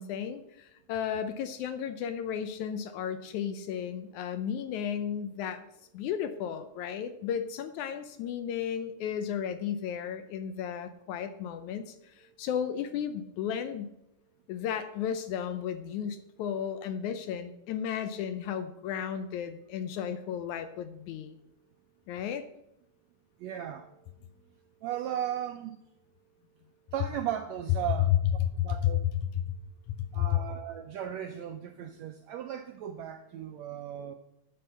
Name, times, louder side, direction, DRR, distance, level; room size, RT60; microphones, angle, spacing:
voice 1, 0.0-5.7 5.9-13.9 14.5-21.4 22.1-22.5 28.1-28.2 28.5-28.9 29.5-29.6 30.0-30.4, left 9 dB, 75° left, 10 dB, 1.9 m, -33 dB
voice 2, 23.4-24.1 24.8-25.7 26.9-29.0 30.1-34.1, right 10 dB, 80° right, 6 dB, 1.6 m, -36 dB
9.3 x 7.2 x 5.5 m, 0.82 s
omnidirectional pair, 3.8 m